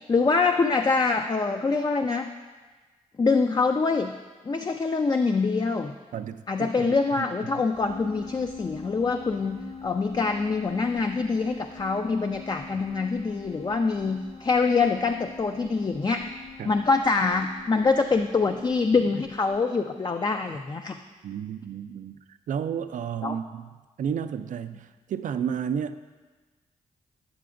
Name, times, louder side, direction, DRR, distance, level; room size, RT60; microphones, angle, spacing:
voice 1, 0.0-2.3 3.2-4.1 4.4-5.9 6.5-16.2 16.7-21.0 23.2-23.4, left 4 dB, 30° left, 5 dB, 0.4 m, -25 dB
voice 2, 6.1-7.6 16.6-16.8 21.2-26.0, right 8 dB, 65° right, 11 dB, 0.4 m, -32 dB
sound 1, 7.7-19.6, left 5 dB, 50° left, 0.8 m, -44 dB
9.3 x 6.7 x 2.5 m, 1.3 s
supercardioid pair, 50°, 14 cm